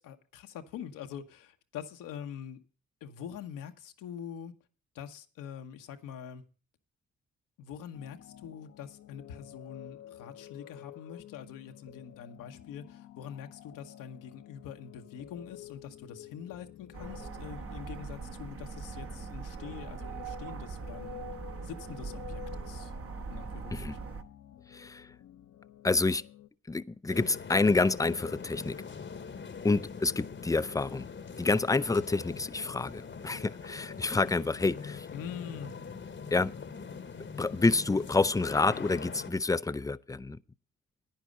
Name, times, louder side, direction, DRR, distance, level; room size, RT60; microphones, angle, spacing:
voice 1, 0.0-2.6 3.0-4.5 4.9-6.4 7.6-21.2 21.6-22.9 23.3-24.1 35.1-35.7, left 8 dB, 80° left, 1.1 m, -44 dB
sound 1, 7.9-26.5, left 12 dB, 60° left, 0.8 m, -51 dB
sound 2, 16.9-24.2, right 5 dB, 45° right, 1.2 m, -41 dB
voice 2, 24.7-25.1 25.8-26.2 26.7-28.8 29.6-31.1 31.4-35.1 36.3-36.5 37.4-40.4, left 3 dB, 10° left, 0.5 m, -28 dB
sound 3, 27.1-39.3, left 5 dB, 35° left, 1.0 m, -43 dB
10.5 x 9.9 x 5.2 m
hypercardioid pair, 45°, 32 cm